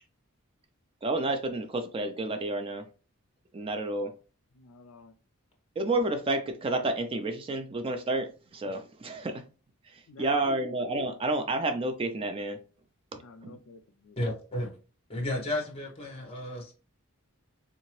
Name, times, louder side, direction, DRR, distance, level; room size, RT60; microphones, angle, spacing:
voice 1, 1.0-2.9 3.5-4.1 5.8-9.4 9.8-12.6 13.4-13.6, right 2 dB, 25° right, 0.3 m, -30 dB
voice 2, 4.5-5.1 10.1-10.6 13.2-14.2, left 4 dB, 90° left, 0.4 m, -51 dB
voice 3, 14.2-14.7 15.1-16.7, left 1 dB, 25° left, 1.0 m, -33 dB
3.5 x 2.8 x 3.0 m
head